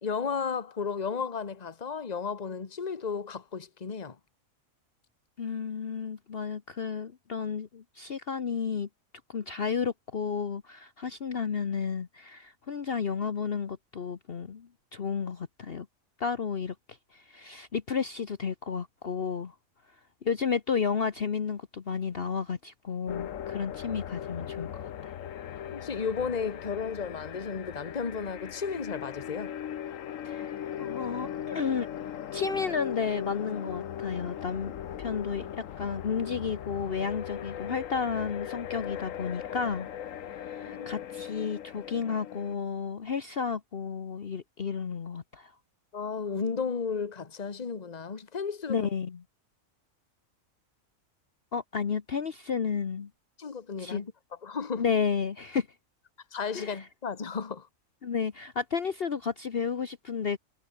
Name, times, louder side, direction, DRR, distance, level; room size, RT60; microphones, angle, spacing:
voice 1, 0.0-4.2 25.7-29.5 40.6-41.0 45.9-48.9 53.4-54.1 54.4-54.9 56.3-57.7, left 5 dB, 30° left, 1.4 m, -34 dB
voice 2, 5.4-8.9 9.3-15.9 16.2-16.7 17.1-19.5 20.2-25.1 30.2-31.9 32.3-34.7 35.0-39.9 40.3-45.5 48.7-49.2 51.5-53.1 53.8-54.0 54.8-55.7 56.5-56.9 58.0-60.4, left 6 dB, 45° left, 1.2 m, -32 dB
sound 1, 23.1-42.5, left 10 dB, 70° left, 1.3 m, -39 dB
omnidirectional pair, 1.4 m